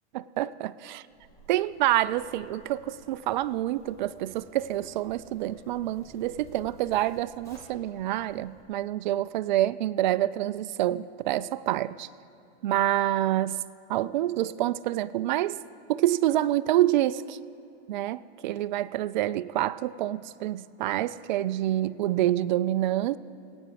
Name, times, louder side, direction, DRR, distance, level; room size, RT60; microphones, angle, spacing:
voice 1, 0.1-1.0 1.5-12.1 12.6-13.6 13.9-15.6 15.9-17.4 17.9-23.2, right 14 dB, 45° right, 0.4 m, -27 dB
Zipper (clothing), 1.1-8.6, equal, 10° left, 2.2 m, -54 dB
22.0 x 8.8 x 4.8 m
hypercardioid pair, 145°, 33 cm